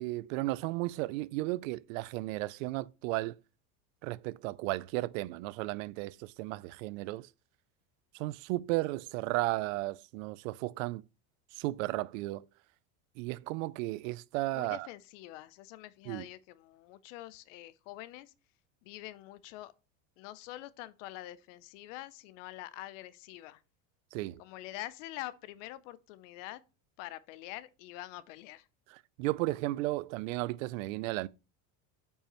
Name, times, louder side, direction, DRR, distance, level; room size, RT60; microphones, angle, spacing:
voice 1, 0.0-3.4 4.0-7.3 8.1-11.0 11.5-12.5 13.2-14.9 16.1-16.3 24.1-24.4 28.9-31.3, right 19 dB, 80° right, 0.5 m, -34 dB
voice 2, 14.5-18.3 18.8-19.7 20.2-23.6 24.4-26.6 27.0-28.7, left 16 dB, 70° left, 0.7 m, -45 dB
8.7 x 5.5 x 3.0 m
cardioid pair, 155°, 39 cm